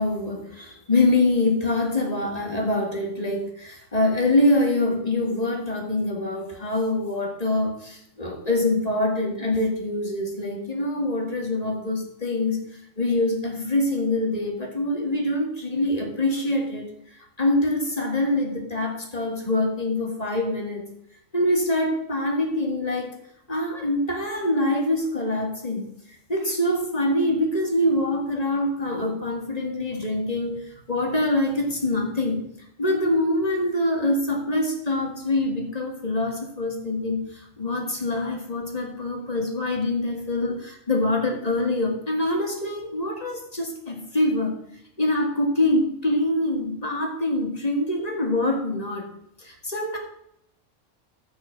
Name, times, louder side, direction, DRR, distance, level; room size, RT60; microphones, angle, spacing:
voice 1, 0.0-12.7 13.0-16.9 17.4-20.8 21.3-23.2 23.5-25.9 26.3-32.5 32.8-44.6 45.0-49.1 49.4-50.0, left 1 dB, 30° left, 2 dB, 2.2 m, -25 dB
11.0 x 6.3 x 6.3 m, 0.74 s
omnidirectional pair, 1.3 m